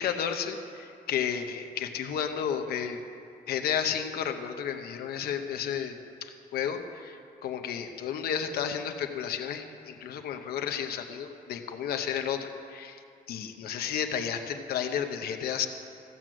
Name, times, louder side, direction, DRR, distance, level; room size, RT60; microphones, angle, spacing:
voice 1, 0.0-3.0 3.5-13.0 13.3-15.7, left 8 dB, 80° left, 6 dB, 0.8 m, -32 dB
15.0 x 6.2 x 7.6 m, 2.5 s
cardioid pair, 175°, 16 cm